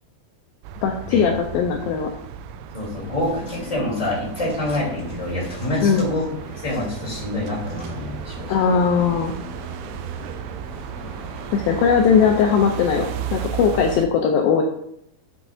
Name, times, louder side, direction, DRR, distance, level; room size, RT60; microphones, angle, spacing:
sound 1, 0.6-14.1, right 9 dB, 90° right, 2.7 m, -35 dB
voice 1, 0.8-2.1 5.8-6.0 8.5-9.4 11.5-14.6, left 6 dB, 85° left, 3 dB, 2.1 m, -19 dB
voice 2, 2.7-6.2 6.6-8.5, left 1 dB, 10° left, -7 dB, 2.7 m, -26 dB
sound 2, 2.9-13.8, left 3 dB, 50° left, 3.6 m, -41 dB
7.8 x 7.5 x 2.7 m, 0.73 s
omnidirectional pair, 4.8 m